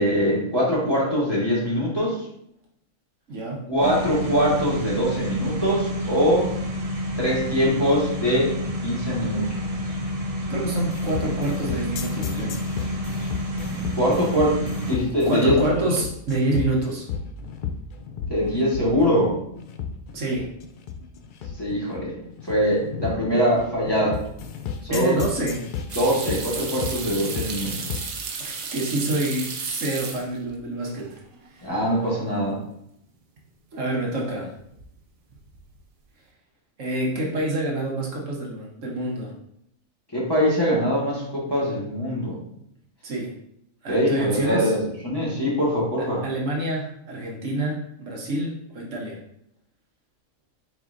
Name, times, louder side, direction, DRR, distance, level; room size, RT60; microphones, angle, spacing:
voice 1, 0.0-2.2 3.7-6.5 7.2-8.5 8.8-9.5 13.9-15.7 18.3-19.4 21.6-22.1 22.5-24.2 24.8-25.2 25.9-28.0 31.6-32.6 40.1-42.4 43.9-46.2, equal, 20° left, -7 dB, 1.5 m, -23 dB
voice 2, 3.3-3.6 10.5-12.6 15.3-17.1 20.1-20.5 24.9-25.7 28.4-31.2 31.5-31.7 33.7-34.5 36.8-39.3 43.0-43.3 43.8-44.7 46.2-49.2, right 1 dB, 70° right, -2 dB, 1.3 m, -27 dB
sound 1, 3.8-15.0, equal, 40° right, 0.5 m, -29 dB
sound 2, 10.9-28.2, left 6 dB, 70° left, 0.4 m, -33 dB
sound 3, 25.9-30.6 30.9-31.5 31.8-31.9 34.6-35.0 35.3-35.8, right 5 dB, 90° right, 1.1 m, -34 dB
4.3 x 4.3 x 2.5 m, 0.73 s
omnidirectional pair, 1.4 m